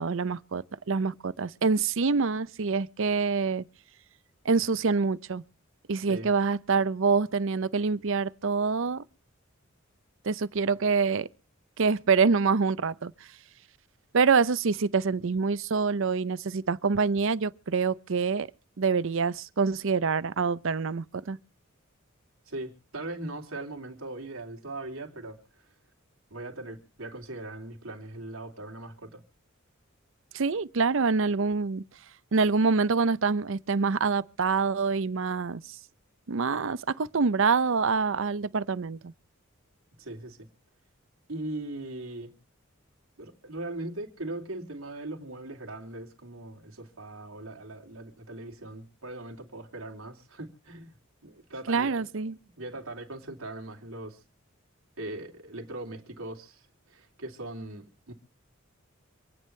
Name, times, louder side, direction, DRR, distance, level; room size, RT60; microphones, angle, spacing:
voice 1, 0.0-3.6 4.4-5.4 5.9-9.0 10.2-11.3 11.8-13.1 14.1-18.5 18.8-21.4 30.3-31.8 32.3-35.6 36.3-39.1 51.7-52.4, right 4 dB, 65° right, 0.6 m, -26 dB
voice 2, 22.5-25.6 26.3-29.2 40.0-40.5 41.3-42.3 43.2-50.9 51.2-52.1 52.6-54.2 55.0-58.1, right 2 dB, 85° right, 3.0 m, -40 dB
27.0 x 9.4 x 3.2 m
head